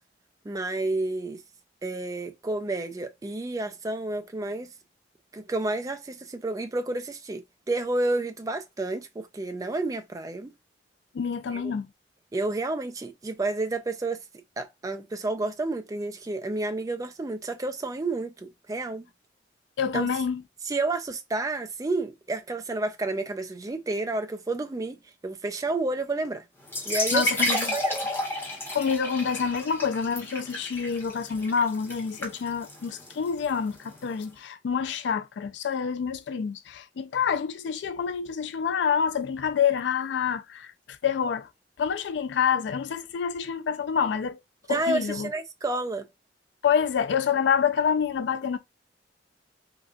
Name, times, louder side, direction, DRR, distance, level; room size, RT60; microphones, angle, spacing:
voice 1, 0.5-1.4 1.8-4.7 5.3-10.5 11.5-11.7 12.3-14.2 14.6-19.1 19.9-20.1 20.6-25.0 25.2-26.4 26.9-27.3 27.5-28.0 44.7-46.1, right 2 dB, 20° right, 0.3 m, -30 dB
voice 2, 11.1-11.9 19.8-20.4 27.1-27.8 28.7-40.7 41.0-41.5 41.8-44.4 44.7-45.3 46.6-48.6, left 7 dB, 75° left, 0.4 m, -27 dB
sound 1, 26.6-34.2, left 1 dB, 15° left, 0.9 m, -32 dB
3.8 x 2.2 x 2.3 m
head